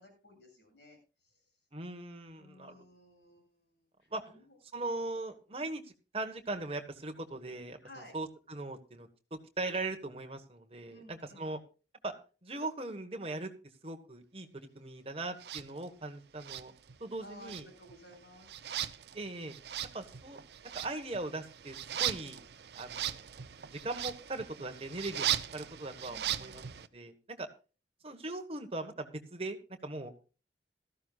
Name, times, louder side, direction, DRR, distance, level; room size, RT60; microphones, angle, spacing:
voice 1, 0.0-1.5 2.4-4.6 7.8-8.2 10.9-11.5 17.2-18.6 26.1-26.8, left 1 dB, 70° left, 0 dB, 7.8 m, -56 dB
voice 2, 1.7-2.9 4.1-4.3 4.7-5.8 6.1-7.8 8.1-11.6 12.0-12.1 12.4-13.5 13.8-16.7 17.0-17.6 19.1-19.5 19.9-20.4 20.7-22.5 22.7-23.3 23.7-27.5 28.0-29.6 29.8-30.1, right 2 dB, 35° right, 5 dB, 1.4 m, -40 dB
sound 1, 15.4-15.7 16.4-17.2 17.4-26.9, right 11 dB, 65° right, 0.6 m, -38 dB
17.0 x 14.0 x 2.4 m, 0.34 s
head